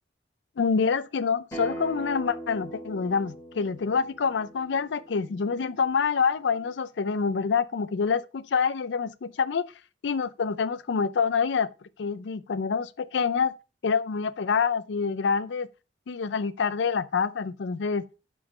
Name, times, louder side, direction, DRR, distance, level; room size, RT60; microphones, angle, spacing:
voice 1, 0.6-9.6 10.0-11.7 12.0-13.5 13.8-15.7 16.1-18.0, left 5 dB, 70° left, 0.4 m, -26 dB
Acoustic guitar, 1.5-6.7, right 1 dB, 15° left, 2.4 m, -41 dB
7.8 x 3.8 x 3.7 m
head